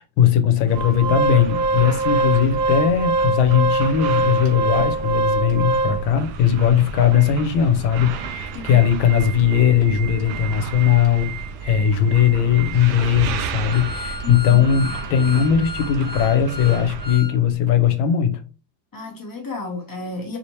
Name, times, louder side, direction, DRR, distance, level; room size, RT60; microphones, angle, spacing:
voice 1, 0.0-11.3 11.6-18.4, left 8 dB, 85° left, 1.5 m, -19 dB
Organ, 0.7-6.3 6.8-6.9 7.2-7.3 7.8-17.4 17.7-17.8, right 2 dB, 60° right, 1.2 m, -26 dB
sound 1, 0.7-17.2, right 5 dB, 80° right, 1.3 m, -33 dB
voice 2, 14.2-14.6 18.9-20.4, left 3 dB, 20° left, 0.5 m, -31 dB
4.9 x 2.8 x 3.1 m
omnidirectional pair, 2.2 m